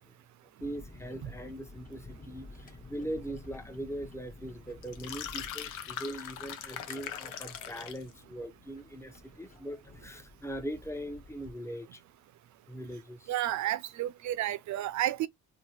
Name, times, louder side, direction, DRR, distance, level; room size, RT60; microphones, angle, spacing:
sound 1, 0.6-11.5, left 2 dB, 30° left, 1.2 m, -52 dB
voice 1, 0.6-12.0 12.7-13.3, right 1 dB, 10° left, 0.8 m, -41 dB
sound 2, 4.8-8.1, left 10 dB, 90° left, 0.7 m, -40 dB
voice 2, 13.3-15.3, right 13 dB, 70° right, 0.5 m, -31 dB
2.9 x 2.8 x 2.8 m
cardioid pair, 90°, 30 cm